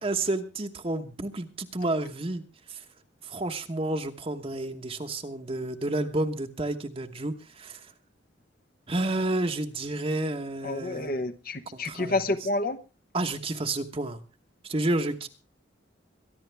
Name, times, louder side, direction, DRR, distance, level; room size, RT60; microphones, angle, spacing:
voice 1, 0.0-2.4 2.7-2.8 3.2-7.9 8.9-11.3 11.7-12.2 13.1-14.2 14.6-15.3, right 2 dB, 30° right, 1.1 m, -30 dB
voice 2, 10.6-12.8, left 2 dB, 50° left, 1.0 m, -29 dB
23.0 x 11.5 x 3.4 m
head